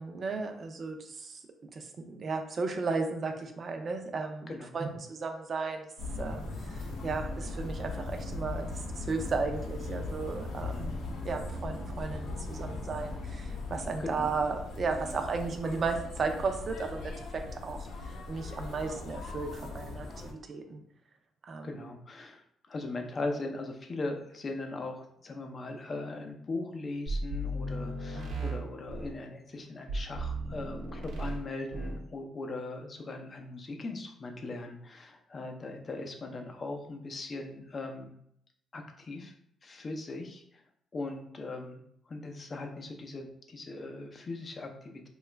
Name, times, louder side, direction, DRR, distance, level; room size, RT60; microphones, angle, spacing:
voice 1, 0.0-1.4 1.7-5.9 6.2-20.8 21.4-21.9 28.2-28.6, right 4 dB, 45° right, 5 dB, 0.5 m, -35 dB
sound 1, 6.0-20.3, left 3 dB, 85° left, 0.6 m, -39 dB
voice 2, 21.6-38.1 38.7-39.3 39.6-40.6 40.9-45.1, left 2 dB, 35° left, 3 dB, 0.5 m, -39 dB
sound 2, 27.1-29.2 29.9-31.4 31.7-32.0, right 1 dB, 85° right, 0.8 m, -35 dB
2.9 x 2.3 x 3.2 m, 0.71 s
cardioid pair, 100°, 0 cm